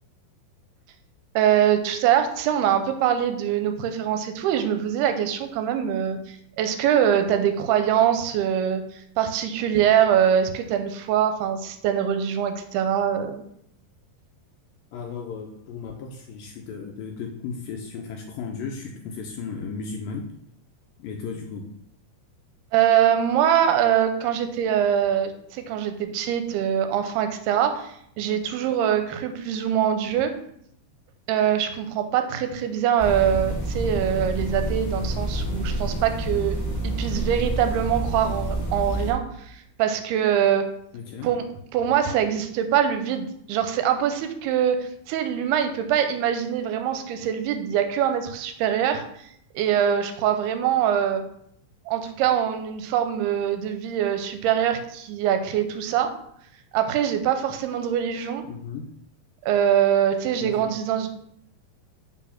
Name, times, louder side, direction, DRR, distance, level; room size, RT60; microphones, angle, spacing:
voice 1, 1.4-8.8 9.2-13.4 22.7-30.3 31.3-36.6 36.8-40.7 41.2-41.4 41.7-49.0 49.5-51.2 51.9-56.1 56.7-58.4 59.4-61.1, right 9 dB, 85° right, 7 dB, 2.5 m, -23 dB
voice 2, 14.9-20.3 21.0-21.6 40.9-41.3 58.5-58.9 60.4-60.7, left 5 dB, 80° left, 2 dB, 2.0 m, -35 dB
sound 1, 33.0-39.1, right 1 dB, 60° left, 0.8 m, -28 dB
5.7 x 4.2 x 5.7 m, 0.71 s
omnidirectional pair, 4.6 m